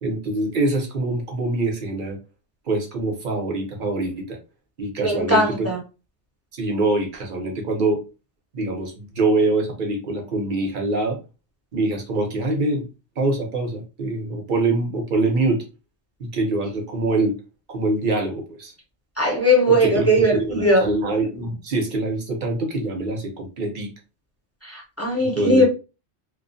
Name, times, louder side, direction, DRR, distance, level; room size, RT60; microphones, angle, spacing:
voice 1, 0.0-2.2 2.7-4.4 4.8-5.7 6.5-8.0 8.5-11.2 11.7-12.9 13.2-15.6 16.2-17.4 17.7-18.7 19.7-23.9 25.2-25.6, right 2 dB, 50° right, 0.7 m, -24 dB
voice 2, 5.0-5.8 19.2-20.8 24.6-25.6, equal, 20° left, 0.4 m, -19 dB
2.3 x 2.1 x 2.5 m
omnidirectional pair, 1.3 m